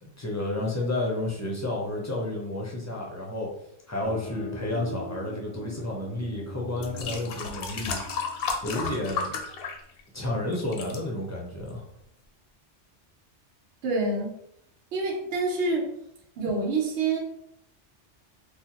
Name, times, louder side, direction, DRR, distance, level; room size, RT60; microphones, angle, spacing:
voice 1, 0.0-3.5 3.9-8.0 8.6-9.3 10.1-11.9, left 1 dB, 25° left, -3 dB, 0.4 m, -31 dB
sound 1, 4.0-9.4, left 1 dB, 20° right, 0.8 m, -41 dB
sound 2, 6.1-6.2 6.8-10.2 10.5-11.0 11.7-11.8, left 5 dB, 65° left, 0.7 m, -33 dB
voice 2, 13.8-14.3 14.9-15.9 16.4-17.2, right 3 dB, 70° right, -1 dB, 1.0 m, -27 dB
3.6 x 2.1 x 2.9 m, 0.75 s
omnidirectional pair, 1.2 m